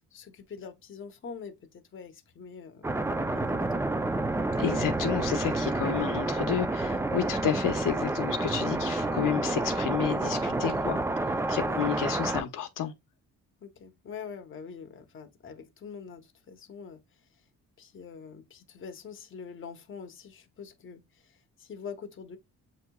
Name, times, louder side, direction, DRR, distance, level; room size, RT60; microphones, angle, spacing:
voice 1, 0.0-4.0 7.2-7.4 11.6-11.9 13.6-17.0 17.8-22.4, left 6 dB, 35° left, 0.8 m, -44 dB
sound 1, 2.8-12.4, right 2 dB, 10° right, 0.4 m, -29 dB
voice 2, 4.6-11.0 11.5-12.9, left 9 dB, 70° left, 0.8 m, -31 dB
7.5 x 2.9 x 2.2 m
cardioid pair, 110°, 33 cm